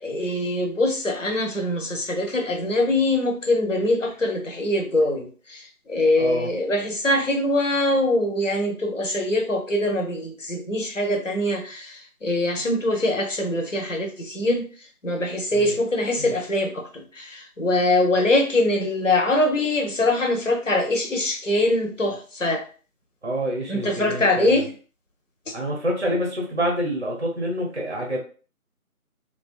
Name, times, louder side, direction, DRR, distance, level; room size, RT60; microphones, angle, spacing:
voice 1, 0.0-14.6 15.0-22.6 23.7-24.7, left 1 dB, 55° left, 3 dB, 0.7 m, -23 dB
voice 2, 6.2-6.5 15.5-15.8 16.2-16.4 23.2-24.7 25.5-28.2, equal, 45° right, -1 dB, 0.6 m, -27 dB
2.5 x 2.3 x 2.3 m, 0.38 s
figure-of-eight pair, 170°, 45 cm